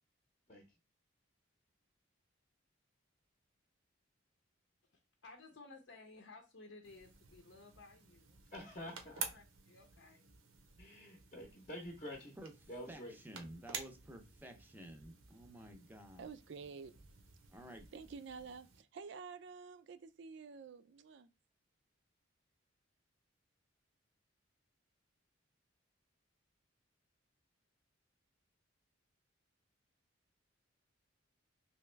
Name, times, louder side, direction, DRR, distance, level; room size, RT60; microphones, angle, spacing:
voice 1, 5.2-8.4 9.0-10.3, left 3 dB, 65° left, 0.7 m, -57 dB
sound 1, 6.8-18.8, right 6 dB, 90° right, 0.9 m, -51 dB
voice 2, 8.5-9.3 10.8-12.3 12.7-13.2, left 1 dB, 30° left, 0.7 m, -48 dB
voice 3, 12.9-16.3 17.5-17.9, right 1 dB, 10° right, 0.6 m, -52 dB
voice 4, 16.2-16.9 17.9-21.3, right 5 dB, 60° right, 0.4 m, -50 dB
3.4 x 3.0 x 3.2 m
head